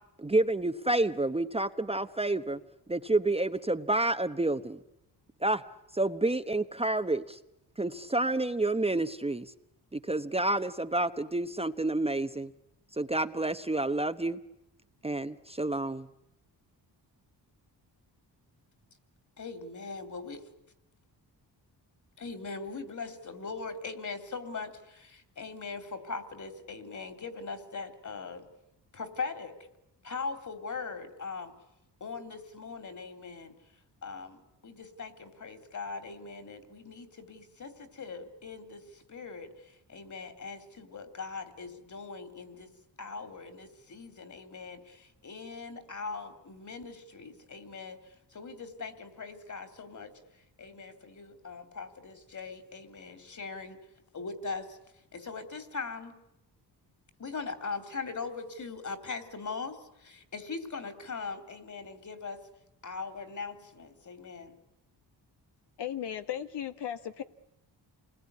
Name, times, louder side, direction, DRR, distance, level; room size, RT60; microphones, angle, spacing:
voice 1, 0.2-2.6 2.9-4.8 5.4-5.6 5.9-7.4 7.8-9.5 9.9-12.5 12.9-14.4 15.0-16.1, right 2 dB, 15° right, 1.0 m, -29 dB
voice 2, 19.4-20.4 22.2-28.5 28.9-29.6 30.0-31.5 32.0-33.5 34.0-42.7 43.0-50.1 50.6-53.8 54.1-54.8 55.1-56.2 57.2-62.4 62.8-64.6, left 4 dB, 45° left, 3.5 m, -40 dB
voice 3, 65.8-67.2, left 10 dB, 75° left, 1.4 m, -36 dB
28.5 x 20.5 x 9.7 m
cardioid pair, 105°, 42 cm